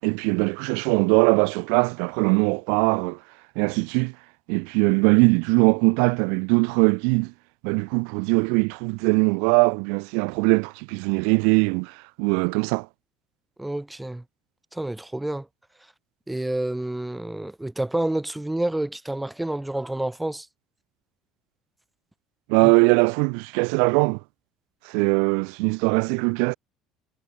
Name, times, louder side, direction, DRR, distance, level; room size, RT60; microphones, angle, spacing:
voice 1, 0.0-3.2 3.5-4.1 4.5-7.3 7.6-12.9 22.5-24.2 24.8-26.5, right 40 dB or more, 90° right, 4.9 m, -21 dB
voice 2, 13.6-14.2 14.7-15.5 16.3-20.5 22.6-22.7, right 1 dB, 5° right, 4.6 m, -29 dB
cardioid pair, 155°, 0 cm